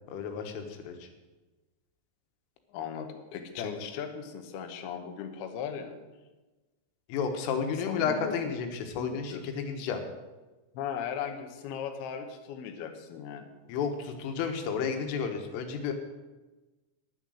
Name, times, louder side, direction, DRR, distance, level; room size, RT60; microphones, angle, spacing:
voice 1, 0.1-1.1 3.6-3.7 7.1-10.0 13.7-15.9, left 6 dB, 85° left, 5 dB, 3.8 m, -32 dB
voice 2, 2.7-6.0 7.8-8.5 8.9-9.4 10.7-13.5, left 7 dB, 70° left, 5 dB, 2.6 m, -38 dB
10.5 x 10.0 x 6.3 m, 1.2 s
omnidirectional pair, 5.6 m